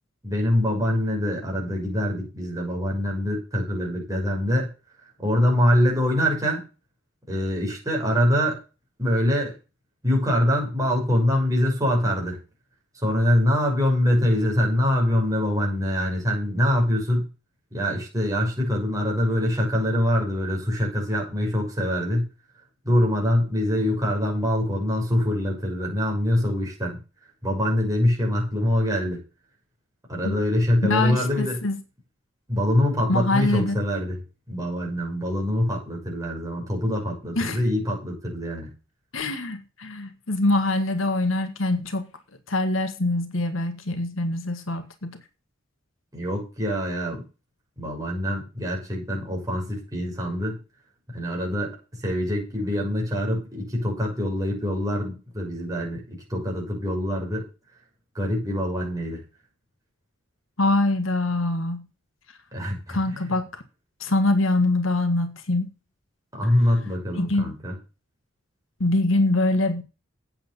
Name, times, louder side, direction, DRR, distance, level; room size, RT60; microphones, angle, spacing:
voice 1, 0.2-4.7 5.2-6.6 7.3-8.6 9.0-9.5 10.0-12.4 13.0-17.3 17.7-22.3 22.8-27.0 27.4-29.2 30.1-31.6 32.5-34.2 34.5-38.7 46.1-47.2 47.8-50.6 51.1-51.8 52.0-56.0 56.3-57.4 58.1-59.2 62.5-63.2 66.3-67.8, left 1 dB, 15° right, 6.5 m, -24 dB
voice 2, 30.8-31.8 33.1-33.8 37.4-37.6 39.1-42.1 42.5-45.1 60.6-61.9 62.9-63.6 64.0-65.7 66.4-66.6 67.1-67.5 68.8-69.8, left 2 dB, 70° left, 1.7 m, -24 dB
8.8 x 7.7 x 7.0 m
head